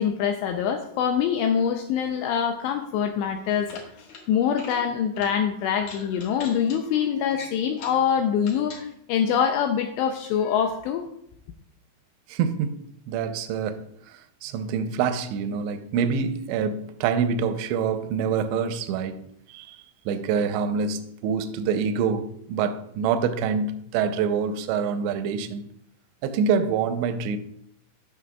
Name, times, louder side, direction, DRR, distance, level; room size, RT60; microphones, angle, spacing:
voice 1, 0.0-3.8 4.3-11.1, left 8 dB, 85° left, 2.5 m, -24 dB
sound 1, 3.6-4.2 4.5-4.8 5.1-5.3 5.8-6.8 7.3-8.0 8.4-8.8, left 4 dB, 60° left, 2.3 m, -42 dB
voice 2, 12.3-19.2 19.5-25.7 26.2-27.4, right 6 dB, 85° right, 2.6 m, -26 dB
14.5 x 5.9 x 2.3 m
omnidirectional pair, 5.6 m